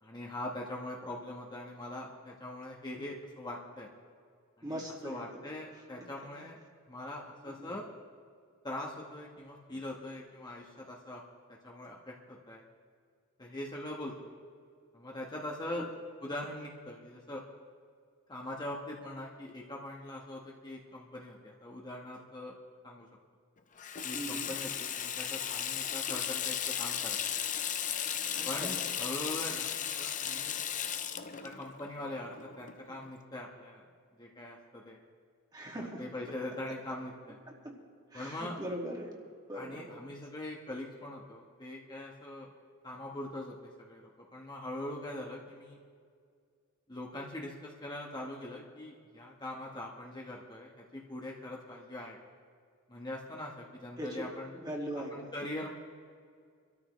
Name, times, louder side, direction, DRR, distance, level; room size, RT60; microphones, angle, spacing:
voice 1, 0.0-3.9 4.6-6.6 6.9-7.9 8.6-11.2 11.5-12.6 13.4-14.3 14.9-15.9 16.2-17.4 18.3-22.5 22.8-23.1 24.0-27.2 28.4-30.6 31.4-33.9 34.1-35.0 35.7-37.4 38.1-38.6 39.5-42.5 42.8-45.8 46.9-52.2 52.9-54.5 55.1-55.7, left 1 dB, 20° left, -2 dB, 1.2 m, -42 dB
voice 2, 4.6-5.4 7.5-7.7 15.8-15.9 24.1-24.5 28.4-28.8 35.5-36.0 37.5-37.7 38.1-39.1 39.5-40.0 54.0-54.3 54.6-55.3, equal, 20° right, -1 dB, 2.1 m, -40 dB
Water tap faucet / Sink (filling or washing), 23.8-33.1, left 9 dB, 40° left, 0.7 m, -35 dB
25.0 x 13.0 x 3.2 m, 2.1 s
head